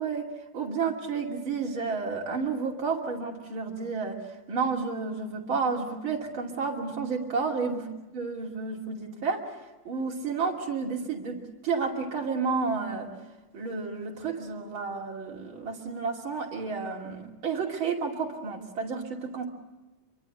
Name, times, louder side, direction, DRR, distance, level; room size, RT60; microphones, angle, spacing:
voice 1, 0.0-7.9 8.1-9.5 9.9-13.1 13.5-19.5, right 5 dB, 70° right, -2 dB, 3.6 m, -31 dB
27.0 x 24.0 x 7.9 m, 1.1 s
omnidirectional pair, 2.3 m